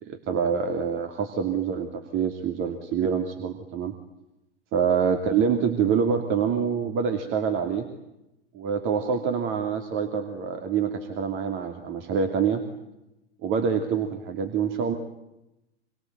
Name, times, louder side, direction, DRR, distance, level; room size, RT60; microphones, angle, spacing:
voice 1, 0.0-3.9 4.7-7.9 8.5-12.6 13.4-14.9, right 6 dB, 35° right, 5 dB, 2.9 m, -26 dB
27.0 x 23.5 x 9.3 m, 0.92 s
hypercardioid pair, 105°, 34 cm